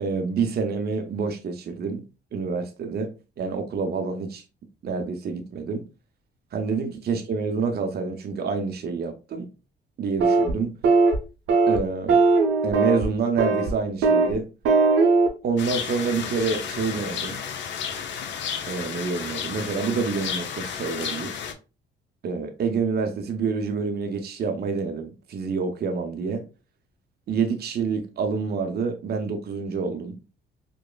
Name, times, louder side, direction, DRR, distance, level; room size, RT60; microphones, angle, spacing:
voice 1, 0.0-2.0 2.3-4.4 4.8-5.9 6.5-9.5 10.0-10.7 11.7-12.2 12.6-14.4 15.4-17.4 18.7-21.3 22.2-26.4 27.3-30.2, right 5 dB, 55° right, 0.7 m, -27 dB
sound 1, 10.2-10.5 10.8-11.2 11.5-11.8 12.1-13.1 13.4-13.7 14.0-14.3 14.6-15.3, right 3 dB, 80° right, 0.9 m, -19 dB
sound 2, 15.6-21.5, left 7 dB, 70° left, 0.6 m, -32 dB
5.1 x 2.1 x 2.2 m
cardioid pair, 90°, 20 cm